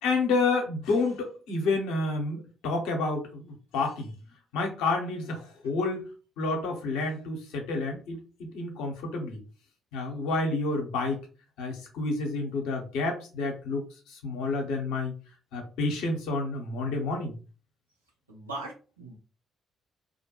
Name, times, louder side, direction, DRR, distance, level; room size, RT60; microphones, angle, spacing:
voice 1, 0.0-4.1 4.5-6.0 6.4-9.4 9.9-11.2 11.6-15.2 15.5-17.4, left 3 dB, 70° left, 2 dB, 0.7 m, -29 dB
voice 2, 18.3-19.2, right 2 dB, 90° right, -2 dB, 0.7 m, -39 dB
2.5 x 2.1 x 2.9 m, 0.35 s
figure-of-eight pair, 45°, 0 cm